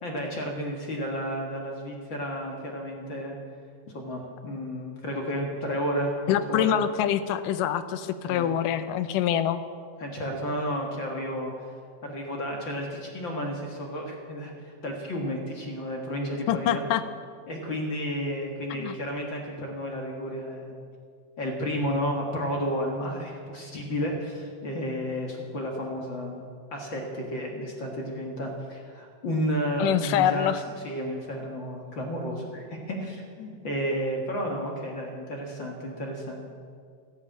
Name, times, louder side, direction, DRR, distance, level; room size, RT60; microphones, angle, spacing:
voice 1, 0.0-3.4 3.9-6.2 6.5-6.8 8.2-8.5 10.0-11.7 12.0-16.8 17.5-20.8 21.4-36.5, equal, 45° left, 0 dB, 1.9 m, -32 dB
voice 2, 6.3-9.6 16.5-17.0 18.7-19.0 29.8-30.6, left 10 dB, 80° left, 12 dB, 2.2 m, -25 dB
14.5 x 11.0 x 8.6 m, 2.1 s
omnidirectional pair, 4.0 m